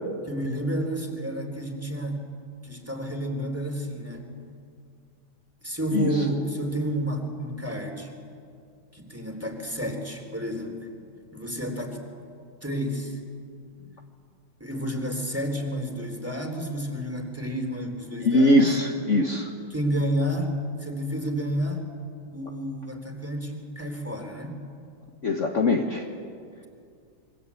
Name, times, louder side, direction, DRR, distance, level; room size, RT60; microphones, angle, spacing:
voice 1, 0.2-2.2 2.6-4.3 5.6-8.1 8.9-10.8 11.3-12.0 12.6-13.2 14.6-18.8 19.7-21.8 22.3-24.5, equal, 5° right, 3 dB, 3.4 m, -30 dB
voice 2, 18.2-19.5 25.2-26.0, left 1 dB, 40° left, 2 dB, 1.6 m, -21 dB
27.0 x 23.5 x 8.4 m, 2.3 s
omnidirectional pair, 2.2 m